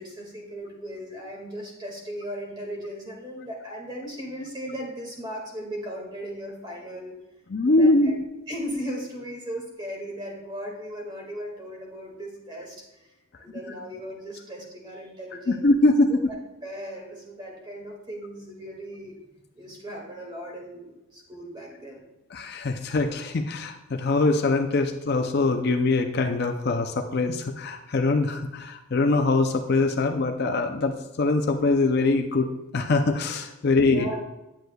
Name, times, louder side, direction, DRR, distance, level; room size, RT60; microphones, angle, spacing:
voice 1, 0.0-7.2 7.7-8.1 8.5-15.7 16.1-16.2 16.6-19.2 19.6-22.0 33.6-34.2, equal, 20° right, -1 dB, 1.8 m, -37 dB
voice 2, 7.5-8.2 15.5-16.1 22.3-34.1, left 2 dB, 50° left, 5 dB, 0.5 m, -23 dB
10.0 x 7.8 x 2.3 m, 0.97 s
head